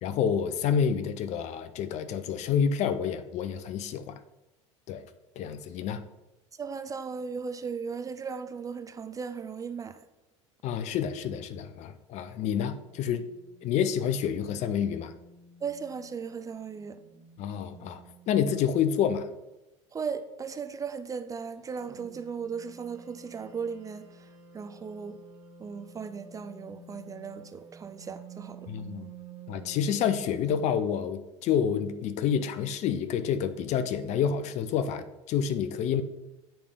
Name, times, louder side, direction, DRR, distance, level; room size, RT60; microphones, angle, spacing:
voice 1, 0.0-4.2 4.9-5.1 5.4-6.0 10.6-13.3 13.6-15.1 17.4-18.0 18.3-19.3 28.7-29.1 29.5-36.0, left 8 dB, 45° left, 0.6 m, -28 dB
voice 2, 6.6-10.0 15.6-17.0 19.9-24.1 24.5-25.2 25.6-28.6, right 6 dB, 20° right, 0.4 m, -37 dB
sound 1, 12.8-19.0 21.6-30.9, right 5 dB, 65° right, 1.7 m, -51 dB
8.8 x 3.4 x 5.0 m
hypercardioid pair, 80°, 16 cm